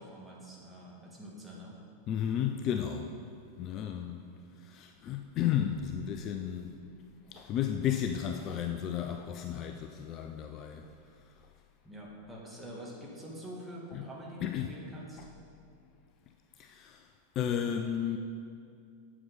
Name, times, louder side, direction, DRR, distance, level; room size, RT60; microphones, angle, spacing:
voice 1, 0.0-1.8 11.8-15.3, equal, 10° right, -3 dB, 1.9 m, -46 dB
voice 2, 2.1-3.1 3.6-4.3 4.6-6.7 7.3-10.9 13.9-14.1 14.4-14.7 15.2-15.3 16.6-17.1 17.4-18.2, left 9 dB, 35° left, 5 dB, 0.4 m, -33 dB
7.8 x 7.5 x 5.3 m, 2.4 s
figure-of-eight pair, 90°, 0 cm